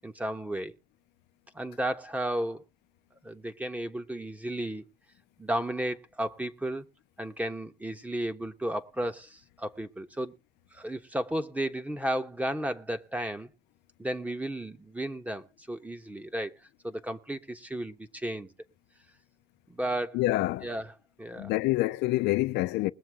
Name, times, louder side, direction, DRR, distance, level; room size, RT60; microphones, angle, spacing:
voice 1, 0.0-0.7 1.5-2.6 3.2-4.8 5.4-6.9 7.2-10.3 10.7-13.5 14.0-16.5 16.8-18.5 19.7-20.2 20.6-20.9 21.2-21.5, right 1 dB, 10° right, 1.2 m, -33 dB
voice 2, 20.1-20.7 21.3-22.9, left 18 dB, 85° left, 0.6 m, -27 dB
21.0 x 7.3 x 3.6 m
cardioid pair, 110°, 17 cm